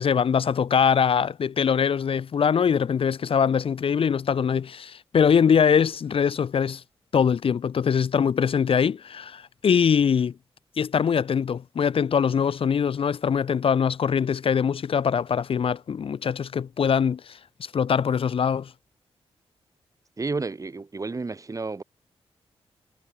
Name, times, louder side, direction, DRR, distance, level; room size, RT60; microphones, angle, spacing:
voice 1, 0.0-6.8 7.1-10.3 10.8-17.4 17.7-18.7, left 7 dB, 60° left, 0.9 m, -22 dB
voice 2, 20.2-21.8, right 3 dB, 30° right, 2.6 m, -31 dB
cardioid pair, 95°, 11 cm